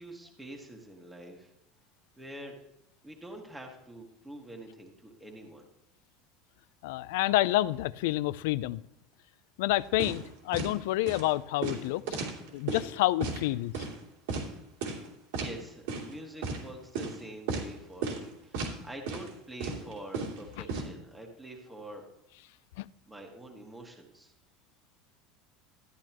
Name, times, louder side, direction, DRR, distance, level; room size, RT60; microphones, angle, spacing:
voice 1, 0.0-1.5 2.2-2.5 3.0-5.7 15.4-22.1 23.1-24.3, right 1 dB, 5° right, 1.6 m, -46 dB
voice 2, 6.8-8.8 9.6-12.2 12.5-13.9 22.8-22.9, left 17 dB, 80° left, 0.4 m, -28 dB
sound 1, 10.0-10.3 10.5-10.7 11.1-11.3 11.6-12.9 13.2-13.4 13.7-13.9 14.3-14.5 14.8-15.1 15.3-15.5 15.9-16.1 16.4-16.6 17.0-17.1 17.5-17.7 18.0-18.2 18.5-18.8 19.1-19.3 19.6-20.8, right 4 dB, 80° right, 2.8 m, -34 dB
13.0 x 11.0 x 3.0 m
cardioid pair, 160°, 0 cm